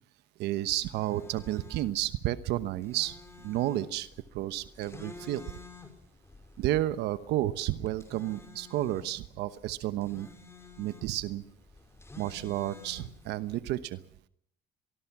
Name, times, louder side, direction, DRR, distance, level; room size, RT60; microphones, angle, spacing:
voice 1, 0.4-3.2 3.4-5.4 6.6-10.3 10.8-11.4 12.2-14.0, right 14 dB, 85° right, 14 dB, 1.1 m, -31 dB
sound 1, 0.6-13.6, left 3 dB, 15° left, 5.5 m, -52 dB
24.0 x 20.5 x 6.0 m, 0.65 s
cardioid pair, 110°, 17 cm